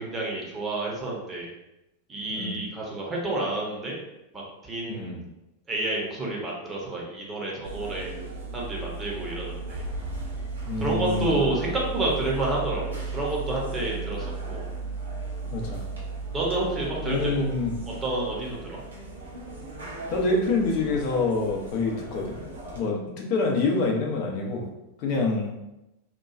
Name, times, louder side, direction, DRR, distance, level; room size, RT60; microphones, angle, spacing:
voice 1, 0.0-1.5 2.1-4.0 4.3-5.1 5.7-8.1 8.5-9.8 10.8-14.6 16.3-17.4 18.0-18.8, right 2 dB, 20° right, -4 dB, 0.8 m, -29 dB
voice 2, 4.9-5.2 10.7-11.4 15.5-15.8 17.0-17.8 20.1-22.4 22.7-24.6 25.0-25.5, left 3 dB, 45° left, 0 dB, 0.6 m, -26 dB
sound 1, 7.6-22.8, right 3 dB, 70° right, 0.7 m, -35 dB
2.9 x 2.3 x 2.4 m, 0.93 s
figure-of-eight pair, 90°, 0 cm